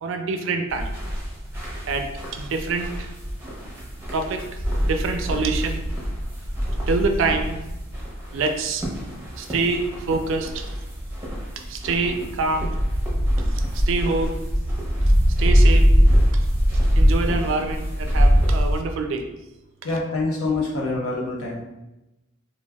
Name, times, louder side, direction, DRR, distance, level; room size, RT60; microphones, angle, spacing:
voice 1, 0.0-0.9 1.9-3.1 4.1-5.9 6.9-7.6 8.3-8.9 9.4-10.7 11.6-12.7 13.5-14.4 15.4-15.9 17.0-19.3, right 3 dB, 65° right, 5 dB, 0.3 m, -26 dB
sound 1, 0.7-18.8, equal, 10° right, 0.6 m, -22 dB
voice 2, 19.8-21.6, left 3 dB, 85° left, -2 dB, 0.7 m, -25 dB
3.3 x 2.2 x 2.2 m, 0.98 s
head